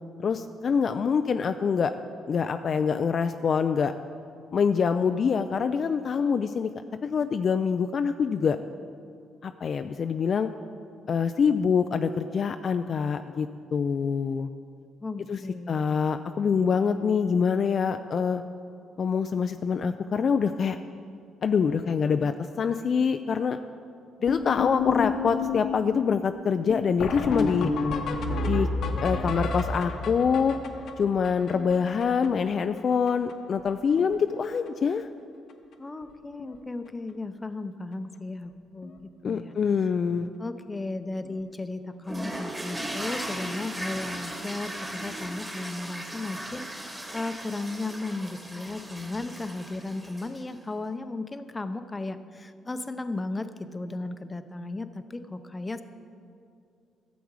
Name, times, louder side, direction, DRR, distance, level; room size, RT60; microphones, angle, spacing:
voice 1, 0.2-1.9 2.3-3.9 4.5-6.7 7.0-8.6 9.4-10.5 11.1-14.5 15.3-15.4 15.7-18.4 19.0-20.8 21.4-23.6 24.2-27.7 28.4-28.7 29.0-30.6 31.0-35.1 39.2-40.3, left 6 dB, 55° left, 8 dB, 0.3 m, -25 dB
voice 2, 15.0-16.0 35.8-39.5 40.4-55.8, left 2 dB, 25° left, 10 dB, 0.6 m, -35 dB
sound 1, 24.3-32.5 32.8-32.9 33.1-33.3 33.6-34.1 34.4-34.7 35.5-35.6 36.0-36.1 36.4-36.6 38.8-38.9 41.2-41.3, left 3 dB, 70° left, 0.9 m, -30 dB
sound 2, 42.1-50.5, right 1 dB, 10° right, 1.6 m, -37 dB
12.0 x 7.1 x 4.8 m, 2.4 s
supercardioid pair, 60°, 0 cm